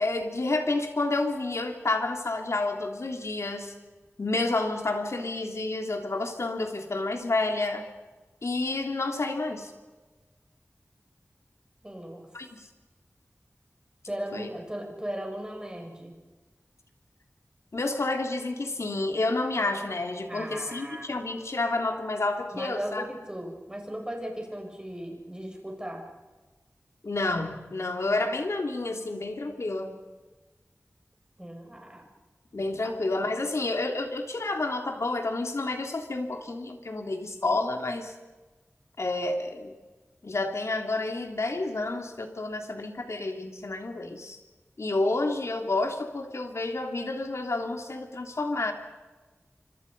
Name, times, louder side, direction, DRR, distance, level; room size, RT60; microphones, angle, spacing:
voice 1, 0.0-3.7 4.2-7.8 8.4-9.7 12.3-12.7 14.3-14.5 17.7-23.1 27.0-30.0 32.5-38.1 39.0-39.7 40.2-44.4 44.8-48.7, left 2 dB, 75° left, 4 dB, 3.2 m, -29 dB
voice 2, 11.8-12.3 14.1-16.1 20.3-21.1 22.5-26.1 31.4-32.1 32.8-32.9, equal, 15° right, 2 dB, 6.6 m, -37 dB
26.5 x 25.5 x 5.5 m, 1.2 s
wide cardioid pair, 70°, 5 cm